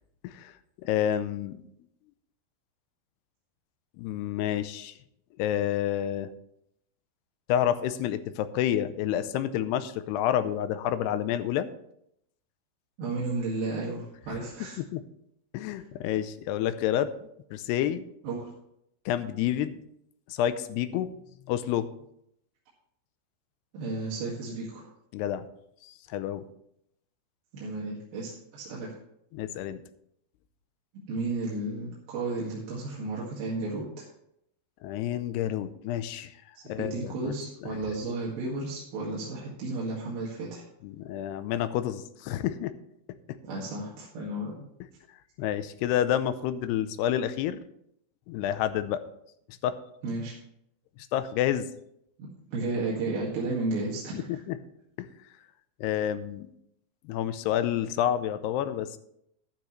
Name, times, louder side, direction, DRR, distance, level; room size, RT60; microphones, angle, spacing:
voice 1, 0.8-1.6 4.0-4.9 5.4-6.3 7.5-11.7 14.8-15.0 15.5-17.1 17.5-18.0 19.1-19.8 20.3-21.1 21.5-21.9 25.1-25.5 25.8-26.4 29.3-29.8 34.8-36.3 36.7-37.4 40.8-42.7 45.4-47.6 48.3-49.0 49.6-49.8 51.1-51.7 54.1-54.6 55.0-55.1 55.8-56.5 57.1-59.0, left 11 dB, 90° left, 12 dB, 2.8 m, -29 dB
voice 2, 13.0-14.8 15.7-15.8 18.2-18.5 23.7-24.9 27.5-29.0 31.1-34.1 36.8-40.6 43.5-44.7 50.0-50.4 52.5-54.4, right 2 dB, 65° right, -5 dB, 3.7 m, -33 dB
12.0 x 12.0 x 3.2 m, 0.74 s
omnidirectional pair, 4.7 m